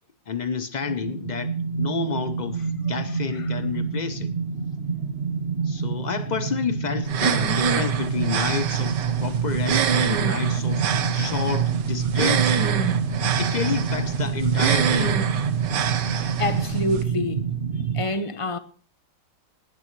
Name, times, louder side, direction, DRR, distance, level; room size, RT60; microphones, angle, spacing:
voice 1, 0.3-4.3 5.6-10.8 11.1-12.9 13.4-15.2, left 6 dB, 90° left, 0.4 m, -30 dB
sound 1, 0.8-18.0, right 6 dB, 35° right, 1.4 m, -26 dB
sound 2, 7.0-17.0, right 7 dB, 70° right, 1.7 m, -27 dB
voice 2, 16.1-17.5 17.9-18.6, left 2 dB, 30° left, 0.6 m, -28 dB
19.5 x 15.0 x 3.2 m
omnidirectional pair, 2.0 m